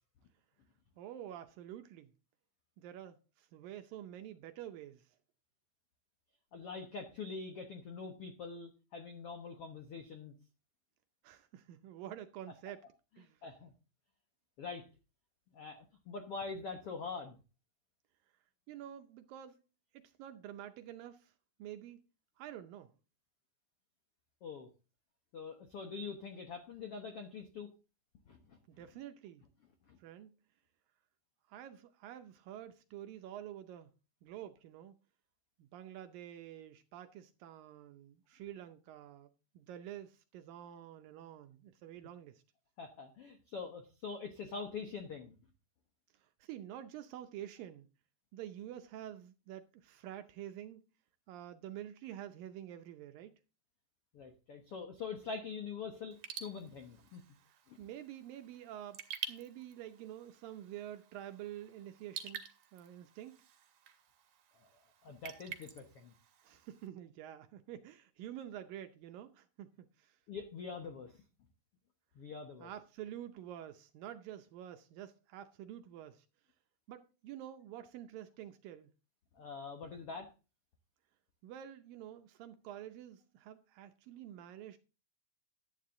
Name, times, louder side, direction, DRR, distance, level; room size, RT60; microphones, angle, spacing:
voice 1, 1.0-2.1 2.8-5.1 11.2-12.9 13.2-13.4 18.7-19.6 19.9-21.3 21.6-22.0 22.4-22.9 28.7-29.4 30.0-30.3 31.5-33.9 34.2-34.9 35.6-42.4 46.2-47.9 48.3-50.8 51.3-53.4 57.8-59.0 59.3-62.4 62.7-63.4 66.4-70.2 72.6-76.3 76.9-78.9 81.4-84.8, right 11 dB, 75° right, 2.2 m, -48 dB
voice 2, 6.5-10.3 13.4-13.7 14.6-14.9 15.5-17.4 24.4-24.7 25.3-27.7 28.3-28.6 29.9-30.0 42.8-45.3 54.1-57.2 57.7-57.8 64.6-64.7 65.0-66.1 70.3-71.2 72.1-72.7 79.3-80.3, left 5 dB, 75° left, 1.3 m, -44 dB
Raindrop / Drip, 56.1-66.9, right 8 dB, 60° right, 2.6 m, -50 dB
12.0 x 9.1 x 3.8 m
omnidirectional pair, 4.6 m